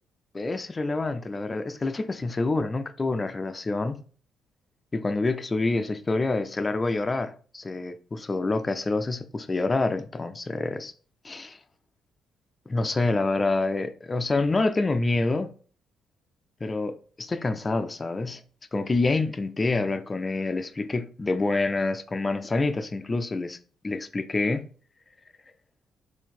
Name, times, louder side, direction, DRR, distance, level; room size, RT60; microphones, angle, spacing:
voice 1, 0.3-4.0 4.9-10.9 11.2-11.6 12.7-15.5 16.6-18.4 18.7-23.6 23.8-24.6, left 3 dB, 25° left, 0.4 m, -27 dB
3.8 x 2.7 x 4.1 m
cardioid pair, 90°, 0 cm